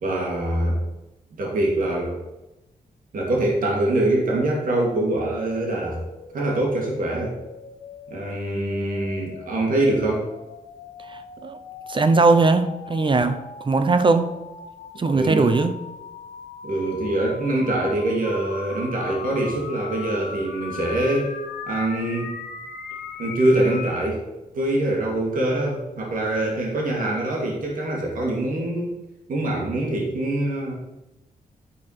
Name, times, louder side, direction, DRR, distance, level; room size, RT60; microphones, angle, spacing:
voice 1, 0.0-0.8 1.3-2.2 3.1-6.0 6.3-7.3 8.1-10.2 15.1-15.5 16.6-21.3 21.7-22.3 23.2-24.2 24.5-29.0 29.3-30.7, right 1 dB, 70° right, 2.5 m, -24 dB
sound 1, 5.2-24.1, left 6 dB, 80° left, 1.0 m, -39 dB
voice 2, 11.1-11.6 11.9-14.3 15.0-15.7, right 3 dB, 35° right, 0.9 m, -20 dB
11.0 x 4.9 x 5.7 m
cardioid pair, 70°, 15 cm